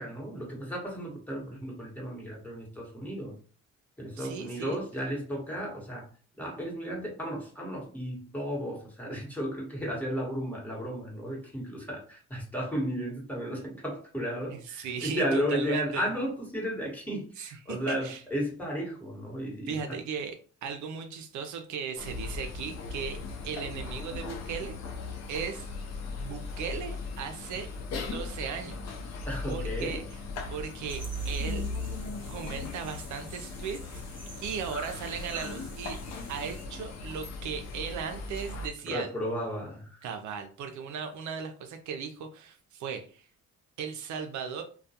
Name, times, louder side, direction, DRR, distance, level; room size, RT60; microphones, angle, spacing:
voice 1, 0.0-3.4 4.0-6.1 6.3-19.8 29.3-30.0 38.8-40.0, equal, 5° left, -3 dB, 1.1 m, -34 dB
voice 2, 4.2-4.8 14.7-16.0 17.4-18.2 19.7-20.4 20.6-24.7 25.3-25.7 26.2-27.7 28.0-29.2 29.5-30.0 30.5-31.7 32.3-33.8 34.4-36.0 36.3-39.1 40.0-43.3 43.8-44.6, right 6 dB, 70° right, 6 dB, 0.5 m, -37 dB
sound 1, 22.0-38.7, left 3 dB, 60° left, 0.6 m, -38 dB
sound 2, 30.9-36.7, right 2 dB, 15° right, 1.1 m, -51 dB
2.3 x 2.2 x 2.7 m, 0.40 s
cardioid pair, 90°, 30 cm